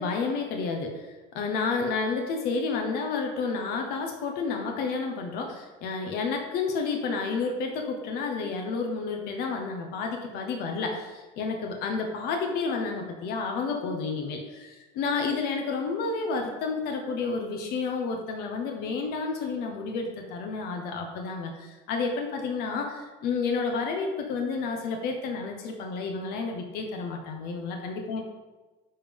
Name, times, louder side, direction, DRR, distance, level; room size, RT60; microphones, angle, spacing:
voice 1, 0.0-28.2, left 4 dB, 70° left, 3 dB, 1.0 m, -30 dB
10.0 x 3.7 x 5.2 m, 1.2 s
cardioid pair, 155°, 17 cm